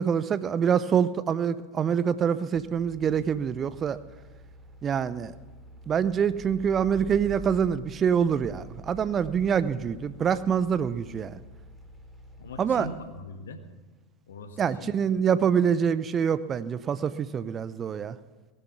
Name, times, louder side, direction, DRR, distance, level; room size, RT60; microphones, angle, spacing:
voice 1, 0.0-4.0 4.8-5.3 5.9-11.4 12.6-12.9 14.6-18.2, right 7 dB, 30° right, 15 dB, 0.6 m, -25 dB
sound 1, 2.6-12.8, left 1 dB, 5° right, 3.4 m, -47 dB
voice 2, 12.4-13.6 14.3-15.0 15.4-15.5, left 2 dB, 70° left, 7 dB, 1.6 m, -41 dB
19.0 x 11.0 x 6.0 m, 1.3 s
figure-of-eight pair, 85°, 0 cm